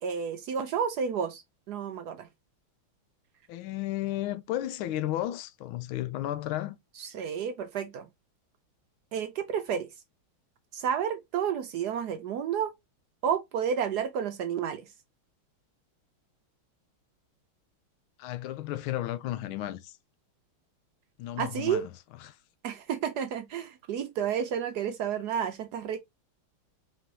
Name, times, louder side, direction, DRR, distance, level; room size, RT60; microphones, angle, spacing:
voice 1, 0.0-1.4 1.7-2.3 7.0-8.1 9.1-9.9 10.7-12.7 13.2-14.9 21.4-21.8 22.6-26.0, right 8 dB, 75° right, 0.9 m, -31 dB
voice 2, 3.5-6.8 18.2-20.0 21.2-21.9 22.2-22.4, left 14 dB, 80° left, 1.4 m, -33 dB
4.2 x 3.8 x 2.9 m
omnidirectional pair, 2.3 m